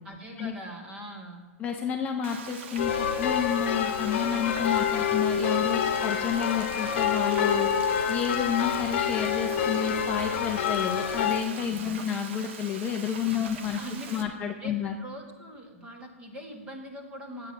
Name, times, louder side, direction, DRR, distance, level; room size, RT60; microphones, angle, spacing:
voice 1, 0.0-1.4 11.5-12.0 13.2-14.3 14.6-17.5, right 1 dB, 15° right, 3 dB, 1.6 m, -42 dB
voice 2, 1.6-13.8 14.1-14.9, left 8 dB, 20° left, 3 dB, 0.6 m, -30 dB
Frying (food), 2.2-14.2, right 5 dB, 55° right, 1.2 m, -42 dB
sound 1, 2.8-11.4, left 8 dB, 50° left, 1.1 m, -27 dB
9.8 x 8.5 x 6.4 m, 1.5 s
hypercardioid pair, 155°, 8 cm